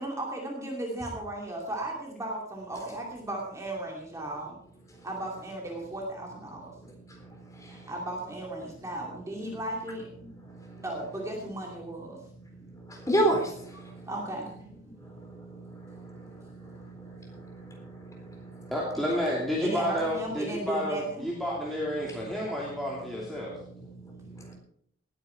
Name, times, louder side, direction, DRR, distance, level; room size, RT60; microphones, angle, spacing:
voice 1, 0.0-4.5 5.0-6.7 7.9-10.1 10.8-12.2 13.7-14.5 19.6-21.3, right 1 dB, 15° right, -1 dB, 2.6 m, -36 dB
voice 2, 7.2-7.9 10.4-10.8 12.6-14.1 15.0-18.7 22.0-22.1 23.4-24.5, right 1 dB, 15° left, 1 dB, 4.0 m, -34 dB
voice 3, 18.7-23.6, equal, ahead, -6 dB, 2.9 m, -30 dB
19.0 x 9.8 x 4.5 m, 0.66 s
head